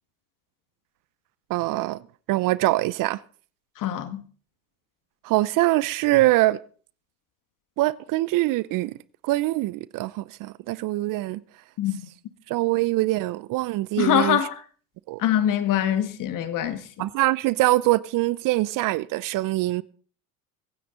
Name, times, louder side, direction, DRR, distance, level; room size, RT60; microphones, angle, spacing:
voice 1, 1.5-2.0 2.3-3.2 5.2-6.6 7.8-8.9 9.2-11.4 12.5-14.4 15.1-15.2 17.0-19.8, right 18 dB, 50° right, 0.7 m, -23 dB
voice 2, 3.8-4.2 11.8-12.1 14.0-14.6 15.2-16.9, left 10 dB, 50° left, 1.7 m, -24 dB
24.0 x 9.5 x 3.9 m
hypercardioid pair, 85°, 42 cm